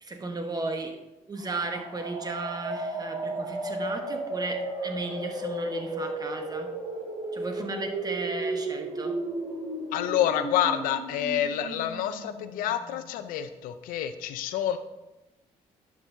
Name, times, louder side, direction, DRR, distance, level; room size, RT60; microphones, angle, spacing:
voice 1, 0.0-1.0 1.3-6.8 7.3-9.2, right 2 dB, 30° right, 5 dB, 1.2 m, -35 dB
sound 1, 1.4-13.1, right 2 dB, 60° right, 2.3 m, -34 dB
voice 2, 9.9-14.8, left 10 dB, 85° left, 10 dB, 0.5 m, -28 dB
11.5 x 6.0 x 2.8 m, 0.97 s
supercardioid pair, 75°, 14 cm